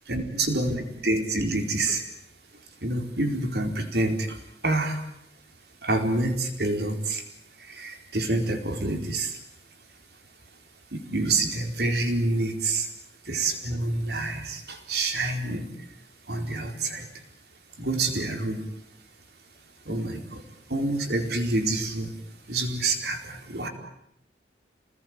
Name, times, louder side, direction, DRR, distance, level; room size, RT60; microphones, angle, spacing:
voice 1, 0.1-2.0 2.8-4.3 4.6-5.0 5.8-7.2 7.8-9.3 10.9-12.9 13.3-15.7 16.3-17.0 17.8-18.6 19.9-20.4 20.7-22.1 22.5-23.7, right 2 dB, 65° right, 5 dB, 4.4 m, -27 dB
27.5 x 20.0 x 9.7 m, 0.77 s
head